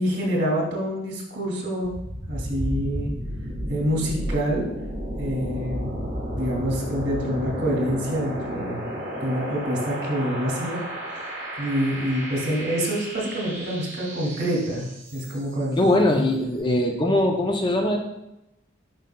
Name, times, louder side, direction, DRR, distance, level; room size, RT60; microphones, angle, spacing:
voice 1, 0.0-1.9 2.3-3.1 3.7-4.7 5.2-6.1 6.4-8.9 9.2-10.8 11.6-15.8, equal, 55° right, -2 dB, 2.2 m, -26 dB
sound 1, 1.8-15.6, equal, 35° right, 2.3 m, -33 dB
voice 2, 15.8-18.0, left 1 dB, 25° left, 3 dB, 0.5 m, -21 dB
9.1 x 5.3 x 2.2 m, 0.87 s
head